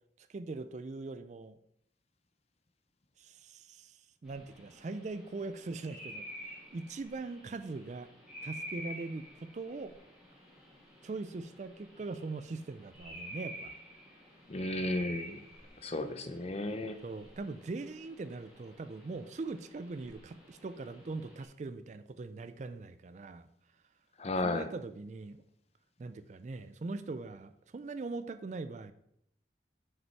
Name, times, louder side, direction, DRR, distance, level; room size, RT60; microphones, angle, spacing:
voice 1, 0.2-1.6 3.2-6.2 6.7-8.1 8.4-9.9 11.0-13.7 17.0-23.5 24.4-25.4 26.0-28.9, right 3 dB, 40° right, 12 dB, 0.3 m, -41 dB
sound 1, 4.3-21.4, equal, ahead, 1.8 m, -49 dB
voice 2, 14.5-15.4 15.8-17.0 24.2-24.7, left 2 dB, 35° left, 9 dB, 0.6 m, -34 dB
6.1 x 5.3 x 4.5 m, 0.73 s
head